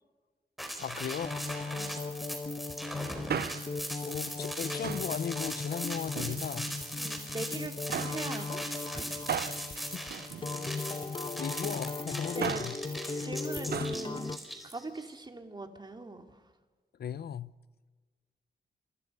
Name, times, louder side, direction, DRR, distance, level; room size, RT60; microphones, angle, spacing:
sound 1, 0.6-15.0, equal, ahead, 4.7 m, -39 dB
voice 1, 0.8-1.4 4.0-6.7 9.8-10.1 10.6-12.8 13.7-13.9 17.0-17.5, left 8 dB, 70° left, 0.6 m, -37 dB
sound 2, 1.2-14.4, left 4 dB, 30° left, 1.1 m, -38 dB
Male speech man speaking, 3.1-3.9 4.8-5.2 6.0-6.8 7.9-8.3 9.3-10.9 12.2-12.8 13.7-14.0 14.3-14.4, right 8 dB, 70° right, 0.6 m, -37 dB
voice 2, 7.0-8.6 8.9-9.3 9.6-9.8 12.3-12.6 13.2-14.3 14.6-16.3, right 2 dB, 25° right, 2.6 m, -41 dB
27.5 x 26.0 x 5.4 m
wide cardioid pair, 120°, 17 cm